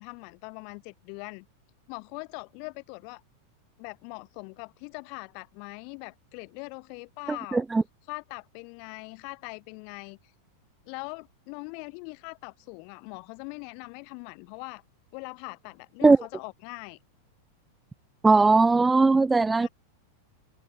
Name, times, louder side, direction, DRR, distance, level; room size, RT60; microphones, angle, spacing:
voice 1, 0.0-1.5 1.9-3.2 3.8-7.6 8.1-10.2 10.9-14.8 15.1-17.0 19.6-19.7, left 40 dB or more, 45° left, 6.6 m, -41 dB
voice 2, 7.5-7.8 16.0-16.2 18.2-19.7, right 3 dB, 10° right, 0.3 m, -19 dB
figure-of-eight pair, 90°, 0 cm